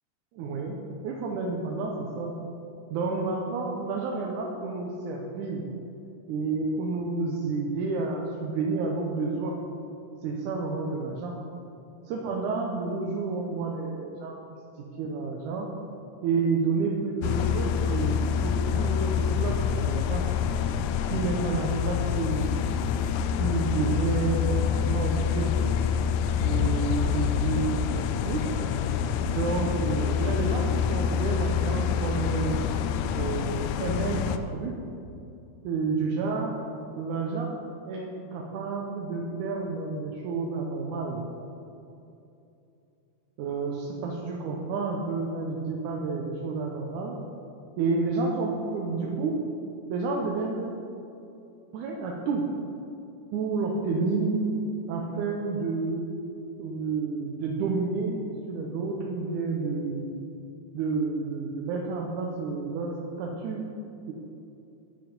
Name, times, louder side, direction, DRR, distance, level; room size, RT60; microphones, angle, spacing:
voice 1, 0.3-0.8 1.0-2.3 2.9-5.7 6.3-9.5 10.2-11.3 12.0-14.6 15.0-15.7 16.2-20.3 21.1-22.6 23.4-25.5 26.4-28.4 29.3-32.6 33.2-34.8 35.6-36.6 37.0-37.6 37.9-41.3 43.4-47.2 47.8-49.3 49.9-50.8 51.7-52.5 53.3-54.5 54.9-56.1 56.6-60.1 60.7-62.9 63.2-63.7 64.1-64.2, right 4 dB, 85° right, -1 dB, 2.3 m, -30 dB
sound 1, 17.2-34.4, left 7 dB, 85° left, 1.9 m, -27 dB
10.5 x 7.2 x 5.2 m, 2.7 s
omnidirectional pair, 3.5 m